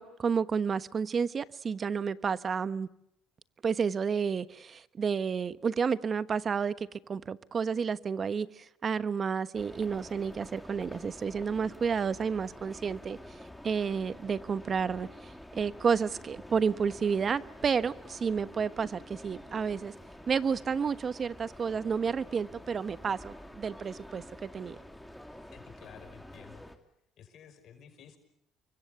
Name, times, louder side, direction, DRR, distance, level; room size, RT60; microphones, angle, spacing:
voice 1, 0.0-2.9 3.6-13.4 13.6-19.9 20.3-24.8, right 6 dB, 40° right, 14 dB, 1.2 m, -31 dB
sound 1, 9.5-26.8, left 1 dB, 5° left, 3.0 m, -48 dB
voice 2, 25.3-26.6 27.2-28.2, left 8 dB, 60° left, 8 dB, 5.7 m, -53 dB
29.0 x 24.0 x 6.9 m, 0.77 s
supercardioid pair, 85°, 0 cm